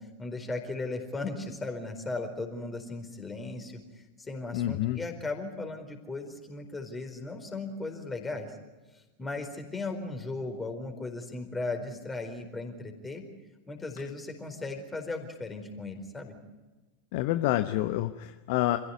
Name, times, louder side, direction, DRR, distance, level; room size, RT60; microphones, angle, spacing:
voice 1, 0.0-8.6 8.9-13.2 13.7-16.3, left 3 dB, 15° left, 5 dB, 4.5 m, -37 dB
voice 2, 4.5-5.0 17.1-18.8, left 15 dB, 50° left, 10 dB, 1.0 m, -28 dB
28.0 x 16.0 x 9.5 m, 1.2 s
figure-of-eight pair, 90°, 0 cm